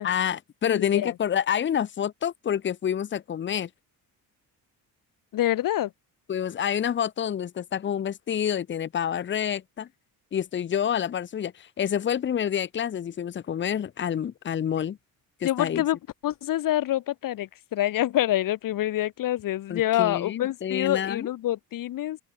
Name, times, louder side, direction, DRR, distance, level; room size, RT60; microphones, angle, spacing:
voice 1, 0.0-3.7 6.3-9.9 10.3-15.0 15.4-15.8 19.7-21.3, left 9 dB, 30° left, 0.9 m, -28 dB
voice 2, 0.7-1.1 5.3-5.9 15.4-16.0 16.2-22.2, left 13 dB, 65° left, 2.0 m, -26 dB
open air
cardioid pair, 160°, 36 cm